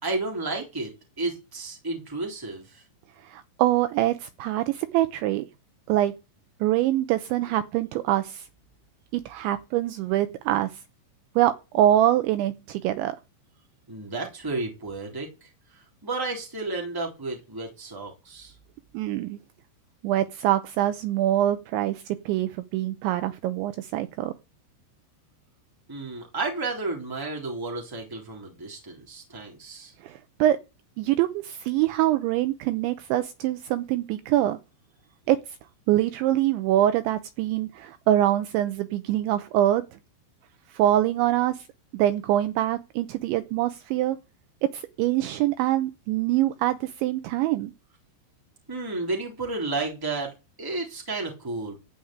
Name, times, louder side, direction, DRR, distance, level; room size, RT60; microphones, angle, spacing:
voice 1, 0.0-2.8 13.9-18.5 25.9-29.9 48.7-51.7, right 3 dB, 5° right, 2.4 m, -32 dB
voice 2, 3.2-5.5 5.9-6.2 6.6-8.5 9.1-10.7 11.4-13.2 18.9-19.4 20.0-24.3 30.0-30.6 31.0-34.6 35.3-35.4 35.9-39.8 40.7-41.7 41.9-44.2 44.7-47.7, right 13 dB, 80° right, 2.8 m, -24 dB
15.0 x 5.4 x 8.7 m
omnidirectional pair, 5.7 m